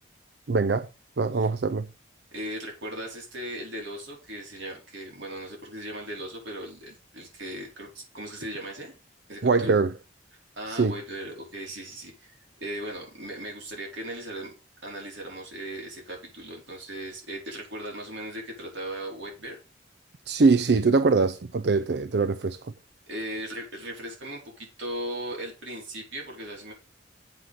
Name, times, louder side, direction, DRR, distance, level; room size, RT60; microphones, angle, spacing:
voice 1, 0.5-0.9 1.2-1.9 9.4-9.9 10.7-10.9 20.3-22.7, right 4 dB, 60° right, 0.5 m, -23 dB
voice 2, 2.3-9.0 9.3-9.7 10.6-12.3 12.6-14.5 14.8-19.6 23.1-26.7, right 1 dB, 80° right, 4.5 m, -37 dB
7.9 x 5.8 x 6.6 m
head